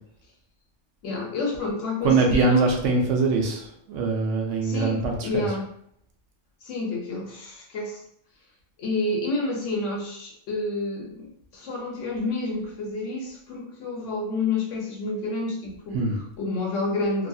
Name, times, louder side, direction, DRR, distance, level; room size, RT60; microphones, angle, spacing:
voice 1, 1.0-2.7 4.6-5.7 6.6-8.0 8.8-17.3, left 2 dB, 80° left, -1 dB, 1.1 m, -29 dB
voice 2, 2.0-5.5 15.9-16.2, right 3 dB, 75° right, 1 dB, 1.0 m, -23 dB
2.9 x 2.6 x 2.3 m, 0.68 s
omnidirectional pair, 1.3 m